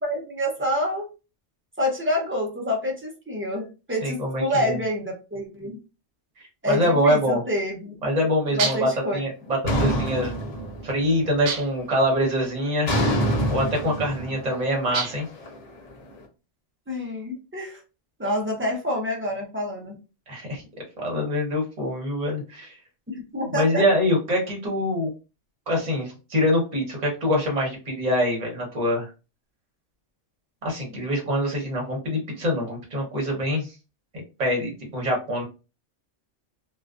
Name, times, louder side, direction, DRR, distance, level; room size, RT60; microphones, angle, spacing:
voice 1, 0.0-1.1 1.8-5.8 6.6-7.9 8.5-9.2 16.9-17.8 18.2-19.9 23.1-23.8, left 1 dB, 15° right, -1 dB, 0.4 m, -27 dB
voice 2, 4.0-4.8 6.7-7.4 8.0-10.3 10.8-12.9 13.5-15.3 20.3-20.6 21.0-22.8 23.5-25.1 25.7-29.1 30.6-33.7 34.4-35.4, equal, 35° right, -1 dB, 0.9 m, -24 dB
sound 1, 8.6-9.0 11.5-11.9 14.9-15.4, right 5 dB, 80° right, 0.9 m, -29 dB
sound 2, 9.6-11.2 11.5-12.0 12.8-15.9, equal, 35° left, 0.9 m, -26 dB
2.4 x 2.3 x 2.3 m, 0.31 s
omnidirectional pair, 1.3 m